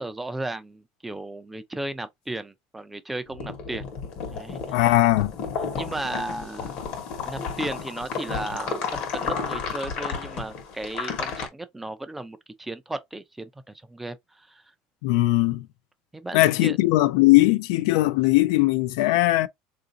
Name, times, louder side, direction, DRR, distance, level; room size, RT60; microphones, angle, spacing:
voice 1, 0.0-3.8 4.3-4.6 5.7-6.8 7.3-14.6 16.1-16.8, right 2 dB, 5° right, 0.3 m, -35 dB
sound 1, 3.3-11.5, left 5 dB, 50° left, 1.0 m, -32 dB
voice 2, 4.7-5.3 15.0-15.7 16.3-19.5, left 18 dB, 75° left, 0.3 m, -19 dB
3.8 x 2.5 x 2.6 m
cardioid pair, 155°, 2 cm